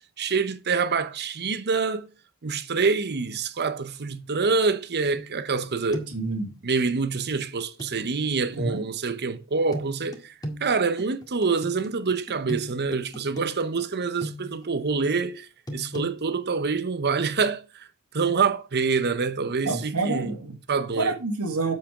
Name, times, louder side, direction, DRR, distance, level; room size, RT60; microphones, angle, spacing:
voice 1, 0.2-2.1 2.4-6.1 6.6-10.3 10.6-15.5 15.7-17.9 18.1-21.2, right 4 dB, 50° right, 0.9 m, -26 dB
sound 1, 5.1-5.6 5.9-6.3 7.8-7.9 9.7-14.7 15.7-16.1, equal, 20° left, 1.8 m, -37 dB
voice 2, 6.1-6.5 8.5-8.8 19.7-20.5 21.0-21.7, right 3 dB, 75° right, 2.3 m, -27 dB
7.6 x 7.3 x 3.6 m
head